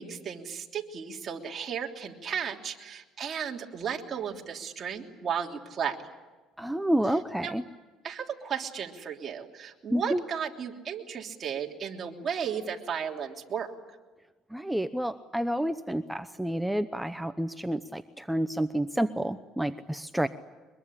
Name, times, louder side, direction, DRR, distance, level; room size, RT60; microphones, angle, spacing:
voice 1, 0.0-6.0 7.4-7.5 8.0-13.7, right 7 dB, 40° right, 1 dB, 3.3 m, -34 dB
voice 2, 6.6-7.6 9.9-10.2 14.5-20.3, right 1 dB, 5° right, 10 dB, 0.8 m, -29 dB
23.5 x 22.5 x 10.0 m, 1.3 s
cardioid pair, 110°, 0 cm